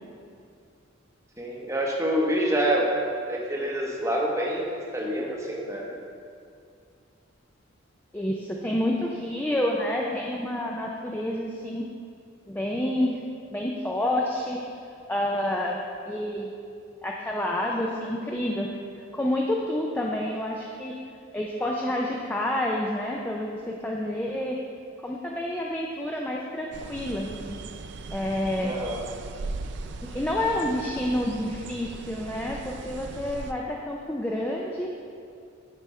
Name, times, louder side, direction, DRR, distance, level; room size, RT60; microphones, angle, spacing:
voice 1, 1.4-3.0 3.3-4.7 4.9-5.8 28.6-29.0, right 1 dB, 15° right, -2 dB, 0.8 m, -26 dB
voice 2, 8.1-11.8 12.5-13.2 13.5-14.8 15.1-15.8 16.1-16.5 17.0-18.7 18.9-20.9 21.3-24.6 25.0-27.6 28.1-28.8 30.0-34.9, left 1 dB, 10° left, -2 dB, 0.4 m, -29 dB
sound 1, 26.7-33.5, right 3 dB, 55° right, 0.4 m, -39 dB
8.9 x 4.9 x 4.3 m, 2.4 s
head